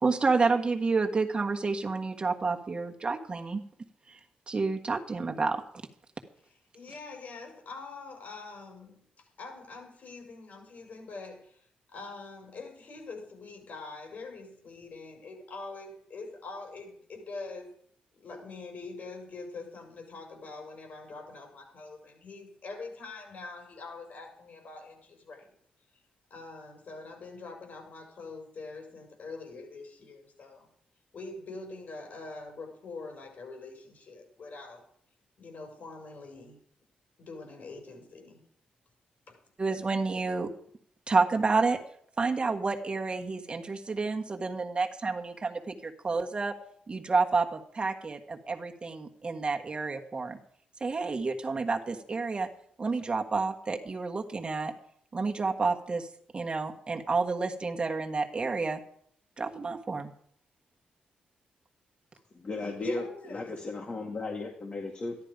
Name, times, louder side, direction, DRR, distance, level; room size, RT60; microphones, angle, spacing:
voice 1, 0.0-3.6 4.1-4.2 4.5-5.6 39.6-40.5 41.1-41.8 42.2-46.5 46.9-50.4 50.8-52.5 52.8-54.7 55.1-56.1 56.3-58.8 59.4-60.1, right 4 dB, 35° right, 3 dB, 1.5 m, -29 dB
voice 2, 6.7-11.6 11.9-17.7 18.2-25.5 26.3-30.7 31.1-34.8 35.4-36.6 37.2-38.4 39.3-39.4 62.6-63.6, left 3 dB, 65° left, 2 dB, 5.7 m, -44 dB
voice 3, 62.3-63.0 63.3-65.2, left 2 dB, 40° left, 0 dB, 2.2 m, -35 dB
13.5 x 12.0 x 5.3 m, 0.65 s
cardioid pair, 75°, 3 cm